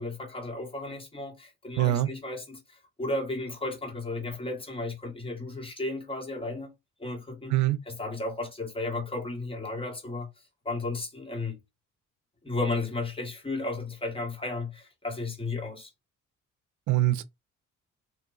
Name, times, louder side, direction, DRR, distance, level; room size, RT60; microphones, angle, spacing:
voice 1, 0.0-6.7 7.0-7.5 7.8-11.6 12.4-15.9, left 2 dB, 20° left, 1.5 m, -34 dB
voice 2, 1.8-2.1 7.5-7.8 16.9-17.2, right 15 dB, 70° right, 0.6 m, -23 dB
2.6 x 2.2 x 3.9 m
cardioid pair, 90°, 30 cm